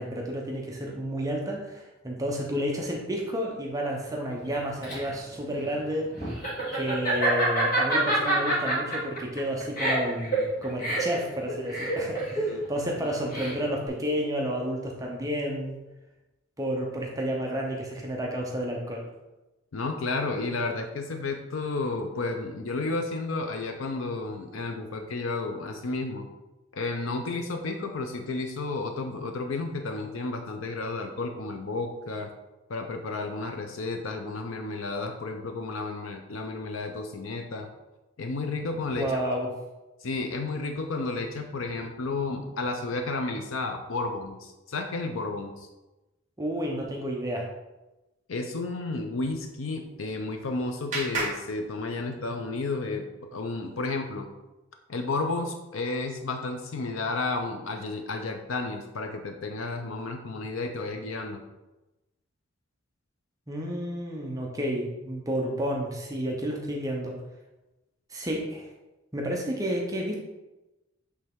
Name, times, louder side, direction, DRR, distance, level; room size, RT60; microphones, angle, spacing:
voice 1, 0.0-6.1 6.7-15.8 16.6-19.0 38.9-39.5 46.4-47.5 63.5-67.2 68.1-68.7 69.1-70.2, equal, 15° right, -1 dB, 0.7 m, -31 dB
Laughter, 4.5-13.9, right 1 dB, 40° left, 1.9 m, -28 dB
voice 2, 19.7-26.3 26.7-32.3 32.7-37.7 38.2-39.2 40.0-45.7 48.3-53.0 53.3-54.3 54.9-61.4, left 3 dB, 85° left, 4 dB, 0.6 m, -32 dB
Clapping, 49.8-52.4, right 2 dB, 35° right, 1.8 m, -36 dB
8.0 x 3.4 x 3.6 m, 1.0 s
head